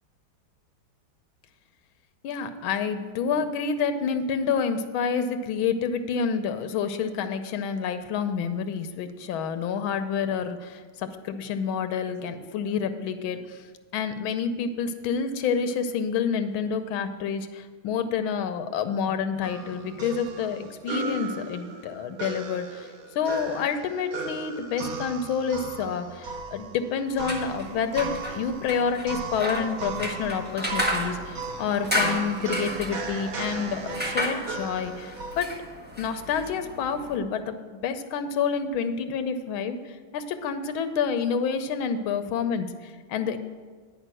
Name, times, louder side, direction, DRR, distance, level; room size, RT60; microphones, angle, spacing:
voice 1, 2.2-13.6 13.9-35.5 36.0-37.5 37.8-43.4, left 6 dB, 85° left, 9 dB, 1.6 m, -28 dB
sound 1, 19.4-35.4, right 4 dB, 60° right, 1.1 m, -36 dB
sound 2, 27.1-37.2, left 1 dB, 5° right, 0.9 m, -33 dB
10.0 x 5.3 x 7.6 m, 1.5 s
omnidirectional pair, 2.2 m